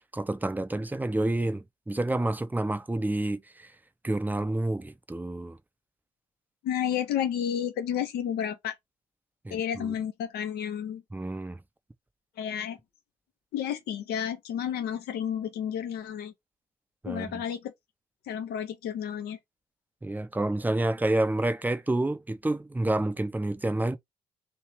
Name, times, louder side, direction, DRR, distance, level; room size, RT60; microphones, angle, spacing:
voice 1, 0.1-3.7 4.0-5.6 9.4-9.9 11.1-11.6 17.0-17.4 20.0-24.0, right 2 dB, 10° right, 0.7 m, -29 dB
voice 2, 6.6-8.7 9.5-11.0 12.4-12.8 13.5-16.3 17.1-17.7 18.3-19.4, left 9 dB, 65° left, 0.9 m, -31 dB
3.2 x 2.8 x 4.6 m
figure-of-eight pair, 40°, 18 cm